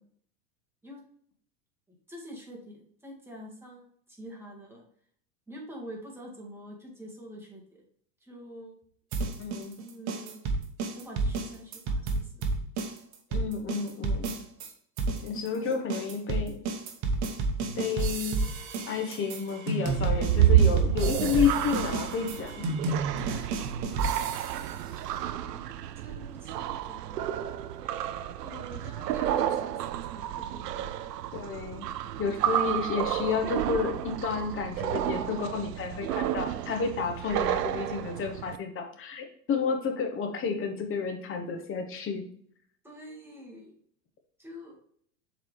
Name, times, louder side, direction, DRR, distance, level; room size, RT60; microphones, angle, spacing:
voice 1, 1.9-4.8 5.5-7.6 8.2-8.8 9.8-10.4 10.9-12.5 15.6-15.7 23.2-23.9 25.1-25.6 26.0-27.4 28.3-31.1 42.8-43.8 44.4-44.7, equal, 5° right, -3 dB, 1.9 m, -46 dB
sound 1, 9.1-14.7 15.0-24.7, right 3 dB, 35° right, 1.1 m, -31 dB
voice 2, 9.4-9.7 13.3-14.3 15.2-16.7 17.8-18.4 18.9-22.7 31.3-31.9 32.2-42.2, left 6 dB, 25° left, 5 dB, 1.0 m, -31 dB
sound 2, 19.8-38.6, right 11 dB, 70° right, 0.5 m, -30 dB
7.1 x 4.1 x 3.2 m, 0.62 s
hypercardioid pair, 95°, 49 cm